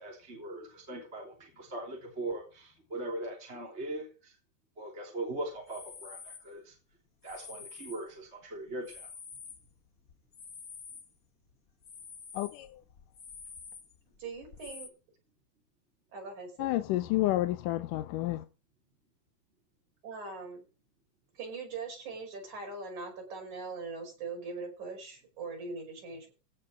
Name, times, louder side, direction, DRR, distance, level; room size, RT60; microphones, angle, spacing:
voice 1, 0.0-4.4 4.8-6.7 7.2-9.1, right 2 dB, 20° right, 3.4 m, -40 dB
sound 1, 5.6-6.5 7.2-8.3 8.7-11.2 11.5-14.9, left 5 dB, 45° left, 1.2 m, -48 dB
voice 2, 12.3-12.8 16.6-18.5, left 16 dB, 85° left, 2.3 m, -30 dB
voice 3, 14.2-14.9 16.1-16.7 20.0-20.6 21.3-26.3, right 4 dB, 65° right, 6.7 m, -41 dB
16.5 x 5.8 x 6.1 m
omnidirectional pair, 3.7 m